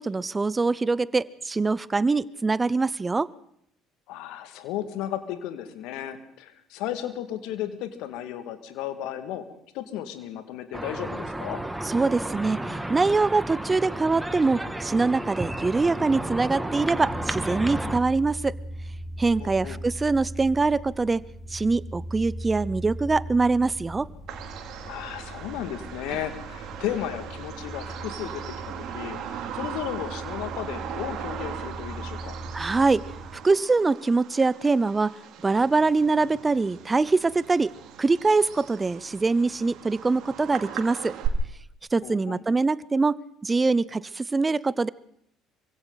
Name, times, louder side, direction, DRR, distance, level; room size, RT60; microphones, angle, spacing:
voice 1, 0.0-3.3 11.8-18.5 19.2-21.2 21.5-24.1 32.5-33.0 33.3-35.1 35.4-37.7 38.0-41.1 41.9-44.9, right 3 dB, 25° right, 20 dB, 0.7 m, -23 dB
voice 2, 4.1-9.4 9.7-11.6 19.4-19.8 24.8-32.4 42.0-42.4, left 11 dB, 70° left, 9 dB, 2.1 m, -34 dB
sound 1, 10.7-18.0, right 1 dB, 10° right, 2.3 m, -32 dB
sound 2, 16.9-33.3, right 1 dB, 25° left, 4.9 m, -39 dB
Bird vocalization bird call bird song, 24.3-41.3, right 10 dB, 60° right, 2.8 m, -39 dB
26.5 x 24.0 x 4.1 m, 0.72 s
hypercardioid pair, 55°, 0 cm